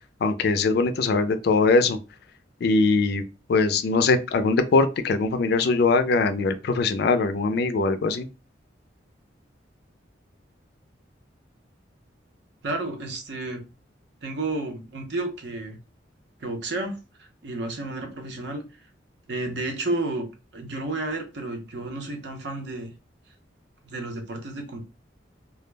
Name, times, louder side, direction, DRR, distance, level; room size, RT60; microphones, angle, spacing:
voice 1, 0.2-2.0 2.6-3.2 3.5-8.3, left 3 dB, 60° left, 0.3 m, -21 dB
voice 2, 12.6-13.6 14.2-15.8 16.4-18.6 19.3-20.2 20.5-22.9 23.8-24.8, right 2 dB, 65° right, 0.7 m, -31 dB
2.3 x 2.0 x 3.2 m
head